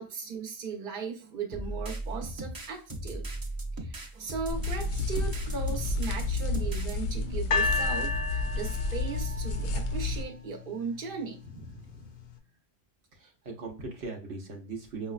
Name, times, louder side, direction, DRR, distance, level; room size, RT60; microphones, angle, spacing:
voice 1, 0.0-3.3 3.8-11.4, right 5 dB, 55° right, 1 dB, 1.0 m, -37 dB
sound 1, 1.5-6.9, right 2 dB, 25° right, 0.5 m, -37 dB
sound 2, 4.5-10.2, left 3 dB, 85° left, 0.9 m, -31 dB
sound 3, 7.5-10.7 11.5-11.6, left 4 dB, 60° left, 0.6 m, -32 dB
voice 2, 11.4-12.2 13.1-15.1, right 3 dB, 75° right, 1 dB, 1.0 m, -40 dB
5.5 x 2.1 x 2.3 m, 0.36 s
omnidirectional pair, 1.1 m